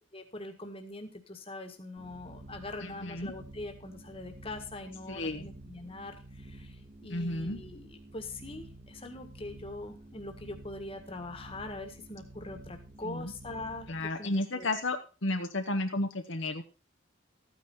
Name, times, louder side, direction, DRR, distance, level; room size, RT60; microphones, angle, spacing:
voice 1, 0.1-7.9 8.1-13.9 14.2-14.7, left 2 dB, 25° left, 6 dB, 1.7 m, -43 dB
sound 1, 2.0-14.1, right 1 dB, 35° right, 1.5 m, -50 dB
voice 2, 2.8-3.3 5.1-5.5 7.1-7.6 13.0-13.3 13.9-16.6, left 2 dB, 65° left, 5 dB, 1.2 m, -33 dB
13.5 x 9.3 x 4.2 m, 0.33 s
head